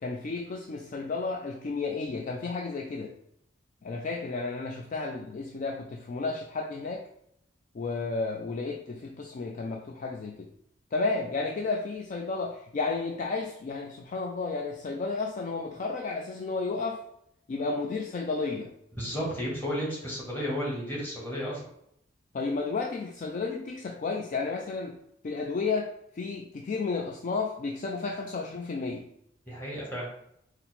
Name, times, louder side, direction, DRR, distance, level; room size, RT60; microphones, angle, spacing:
voice 1, 0.0-3.1 3.8-7.0 7.7-10.5 10.9-17.0 17.5-18.7 22.3-25.0 25.2-25.9 26.2-29.1, left 4 dB, 40° left, 1 dB, 0.3 m, -32 dB
voice 2, 18.9-21.6 29.5-30.1, equal, 10° left, -5 dB, 1.2 m, -33 dB
4.1 x 2.0 x 4.0 m, 0.73 s
head